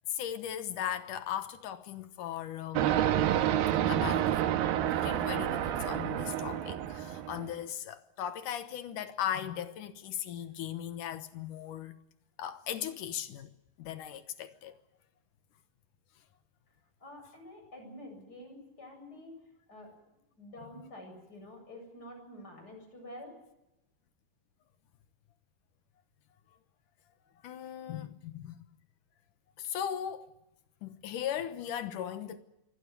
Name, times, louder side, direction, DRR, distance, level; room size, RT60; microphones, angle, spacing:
voice 1, 0.1-2.9 3.9-4.5 4.9-12.0 12.4-13.5 13.8-14.7 27.4-28.6 29.6-30.3 30.8-32.4, left 10 dB, 65° left, 2.3 m, -38 dB
sound 1, 2.8-7.5, right 11 dB, 75° right, 2.7 m, -29 dB
voice 2, 17.0-19.4 19.7-19.9 20.4-23.4, left 1 dB, 25° left, 8.3 m, -48 dB
24.5 x 16.5 x 9.8 m
omnidirectional pair, 4.6 m